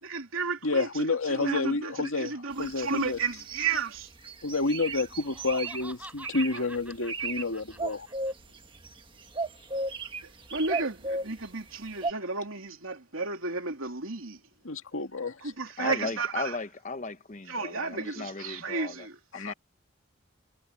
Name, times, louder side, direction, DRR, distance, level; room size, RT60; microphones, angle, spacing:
voice 1, 0.0-4.1 6.5-6.7 10.5-14.4 15.4-16.6 17.5-19.2, right 4 dB, 80° right, 3.2 m, -33 dB
voice 2, 0.6-3.2 4.4-8.1 14.6-15.4 19.3-19.5, left 3 dB, 80° left, 2.1 m, -30 dB
sound 1, 2.6-3.8 4.2-5.8 6.2-6.6 6.9-7.4 7.7-9.0 9.3-11.4 12.0-12.1, right 3 dB, 25° right, 1.6 m, -34 dB
Laughter, 5.1-8.3, right 1 dB, 5° right, 6.6 m, -47 dB
voice 3, 15.8-19.1 19.3-19.5, left 3 dB, 35° left, 1.0 m, -36 dB
head